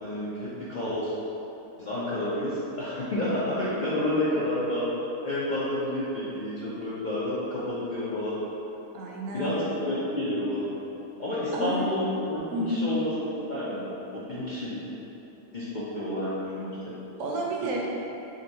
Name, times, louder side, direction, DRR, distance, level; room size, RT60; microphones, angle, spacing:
voice 1, 0.0-1.1 1.8-4.9 5.2-8.4 9.3-10.7 11.2-14.8 15.5-16.8, left 1 dB, 60° left, -9 dB, 0.4 m, -30 dB
voice 2, 8.9-9.6 11.5-11.9 12.5-12.8 17.2-17.8, right 1 dB, 65° right, -2 dB, 1.0 m, -30 dB
3.7 x 2.6 x 4.5 m, 3.0 s
omnidirectional pair, 1.6 m